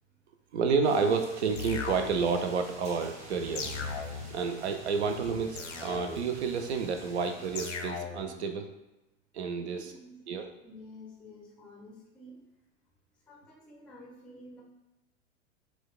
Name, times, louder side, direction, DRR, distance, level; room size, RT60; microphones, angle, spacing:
voice 1, 0.5-3.7 4.3-8.7 9.3-9.9 10.3-10.5, right 5 dB, 65° right, 6 dB, 0.5 m, -30 dB
sound 1, 0.8-7.7, right 1 dB, 20° right, 1.0 m, -48 dB
sound 2, 1.6-2.5 3.6-4.5 5.6-6.5 7.6-8.4, left 5 dB, 80° left, 0.5 m, -38 dB
voice 2, 9.6-10.2 10.6-12.4 13.3-14.6, left 1 dB, 5° left, -2 dB, 0.5 m, -50 dB
4.5 x 2.2 x 2.3 m, 0.97 s
figure-of-eight pair, 90°, 36 cm